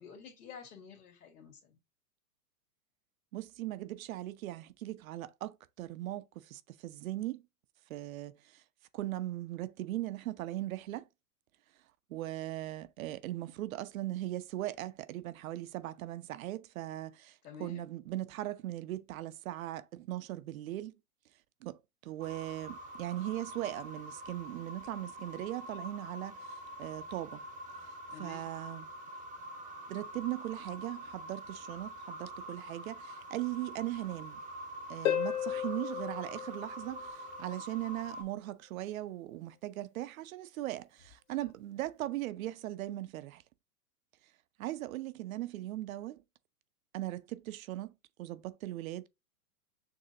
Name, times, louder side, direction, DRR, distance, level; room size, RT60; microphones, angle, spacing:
voice 1, 0.0-1.8 17.4-17.8 28.1-28.5 41.4-41.5, left 6 dB, 75° left, 2.0 m, -50 dB
voice 2, 3.3-7.4 7.9-8.6 8.9-11.1 12.1-20.9 21.6-27.4 28.2-28.9 29.9-34.4 34.9-43.4 44.6-46.2 46.9-49.1, right 15 dB, 60° right, 0.6 m, -39 dB
sound 1, 22.2-38.2, right 1 dB, 15° right, 0.7 m, -46 dB
Harp, 35.0-37.5 41.0-41.1, left 10 dB, 50° left, 1.0 m, -35 dB
6.7 x 2.8 x 2.6 m
hypercardioid pair, 130°, 47 cm